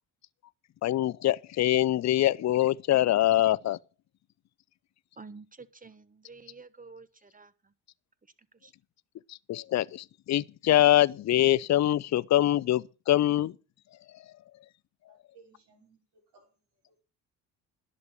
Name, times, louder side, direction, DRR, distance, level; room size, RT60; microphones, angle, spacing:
voice 1, 0.8-3.8 9.3-13.5, left 13 dB, 40° left, 0.6 m, -24 dB
voice 2, 5.2-7.7 8.6-8.7, right 4 dB, 20° right, 1.1 m, -49 dB
voice 3, 15.1-17.0, right 5 dB, 65° right, 5.5 m, -61 dB
11.0 x 6.7 x 7.2 m
supercardioid pair, 70°, 43 cm